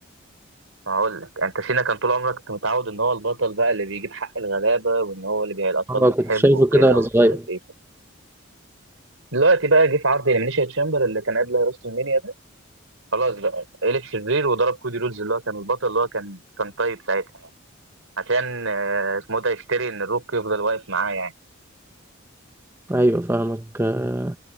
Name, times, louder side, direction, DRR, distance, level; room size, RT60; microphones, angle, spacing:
voice 1, 0.9-7.6 9.3-12.3 13.1-17.2 18.2-21.3, right 3 dB, 75° right, 3.9 m, -23 dB
voice 2, 5.9-7.4 22.9-24.4, right 1 dB, 10° right, 0.6 m, -19 dB
head